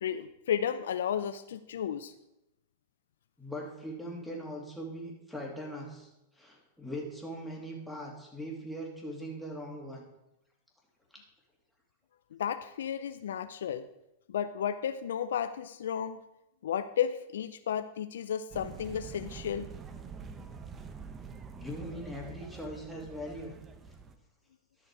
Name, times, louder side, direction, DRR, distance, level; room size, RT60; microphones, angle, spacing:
voice 1, 0.0-2.1 12.3-13.8 14.3-16.2 16.6-19.7, left 9 dB, 75° left, 12 dB, 0.4 m, -33 dB
voice 2, 3.4-6.1 6.4-10.0 11.1-11.2 21.5-23.6, equal, ahead, -2 dB, 2.5 m, -40 dB
sound 1, 18.5-24.2, right 5 dB, 25° right, 0.8 m, -46 dB
12.0 x 6.5 x 4.7 m, 0.89 s
hypercardioid pair, 105°, 0 cm